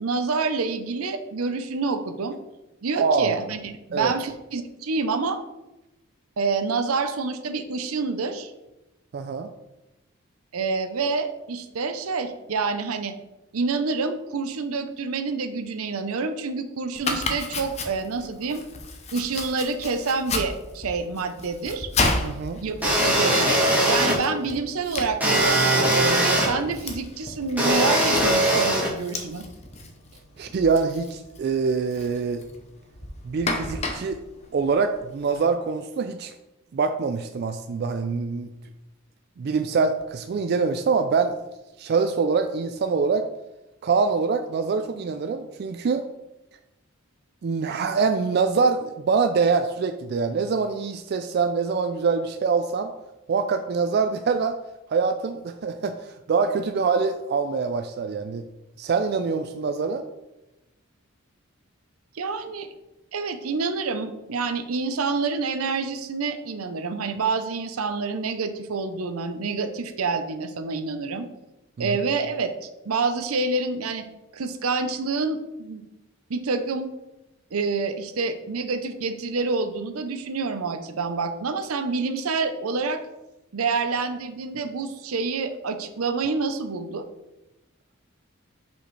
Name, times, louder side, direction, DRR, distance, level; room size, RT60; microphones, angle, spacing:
voice 1, 0.0-2.4 2.8-5.4 6.4-8.5 10.5-13.1 13.5-18.6 19.1-21.9 22.6-22.7 23.0-29.5 62.1-62.7 63.1-71.3 71.8-74.0 74.3-75.8 76.3-76.9 77.5-83.0 83.5-87.0, right 4 dB, 85° right, 9 dB, 0.6 m, -27 dB
voice 2, 3.0-3.4 3.9-4.1 9.1-9.5 22.2-22.6 30.4-32.4 33.2-34.2 34.5-36.3 36.7-38.5 39.4-41.3 41.8-43.2 43.8-46.1 47.4-52.9 53.3-54.6 54.9-58.4 58.8-60.0 71.8-72.0, right 5 dB, 50° right, 7 dB, 0.3 m, -24 dB
Domestic sounds home sounds, 16.9-35.4, left 3 dB, 30° left, 0.7 m, -34 dB
sound 1, 22.8-24.1 25.2-26.5 27.6-28.9, right 1 dB, 10° right, 1.8 m, -20 dB
6.3 x 5.2 x 3.2 m, 0.97 s
head